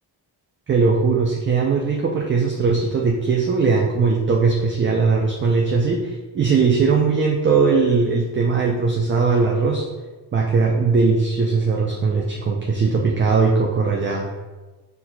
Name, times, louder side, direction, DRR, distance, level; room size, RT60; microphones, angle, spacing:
voice 1, 0.7-9.9 10.3-14.3, right 4 dB, 30° right, -1 dB, 0.5 m, -19 dB
4.5 x 3.9 x 2.2 m, 1.2 s
cardioid pair, 95°, 41 cm